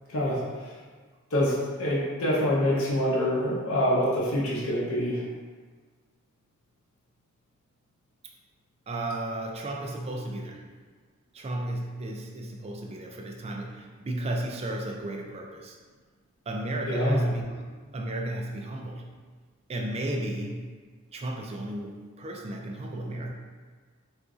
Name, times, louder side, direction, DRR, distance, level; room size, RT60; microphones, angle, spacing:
voice 1, 0.1-0.7 1.3-5.2 16.9-17.2, equal, 70° left, -5 dB, 0.7 m, -26 dB
voice 2, 8.9-10.6 11.3-15.8 16.5-17.6 17.9-19.1 19.7-20.7 21.1-23.3, right 1 dB, 30° right, 1 dB, 0.3 m, -33 dB
3.8 x 2.5 x 2.4 m, 1.4 s
head